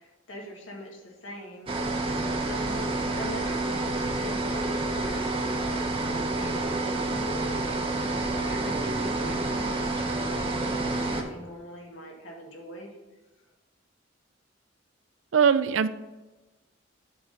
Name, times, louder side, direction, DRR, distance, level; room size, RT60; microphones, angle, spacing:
voice 1, 0.0-2.0 2.4-2.9 3.2-12.9, equal, 90° left, -1 dB, 2.0 m, -43 dB
sound 1, 1.7-11.2, right 2 dB, 30° right, 0.9 m, -29 dB
sound 2, 2.5-5.8, left 1 dB, 45° right, 2.6 m, -45 dB
voice 2, 15.3-15.9, right 7 dB, 80° right, 13 dB, 0.4 m, -21 dB
7.6 x 4.2 x 5.4 m, 1.1 s
head